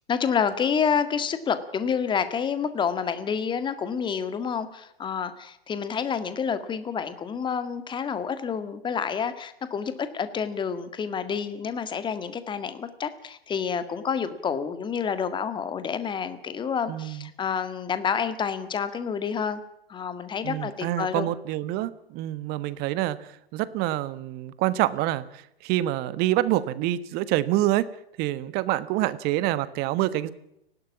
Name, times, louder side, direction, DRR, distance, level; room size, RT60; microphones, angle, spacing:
voice 1, 0.1-19.6 19.9-21.3, left 6 dB, 15° left, 11 dB, 1.9 m, -28 dB
voice 2, 16.9-17.3 20.4-27.9 28.2-30.3, right 15 dB, 30° right, 16 dB, 1.4 m, -26 dB
30.0 x 12.5 x 7.3 m, 0.79 s
hypercardioid pair, 120°, 30 cm